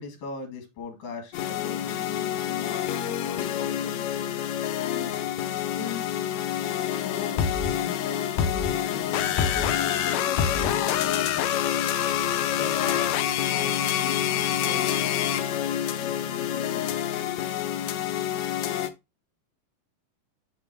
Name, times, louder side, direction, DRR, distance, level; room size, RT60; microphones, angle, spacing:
voice 1, 0.0-4.3 4.8-5.1 5.4-6.1 6.9-7.4 7.8-10.8 12.5-15.2 16.0-17.1, left 5 dB, 65° left, 3 dB, 3.6 m, -40 dB
sound 1, 1.3-18.9, left 10 dB, 85° left, 1.6 m, -27 dB
7.0 x 6.1 x 2.9 m, 0.23 s
omnidirectional pair, 4.1 m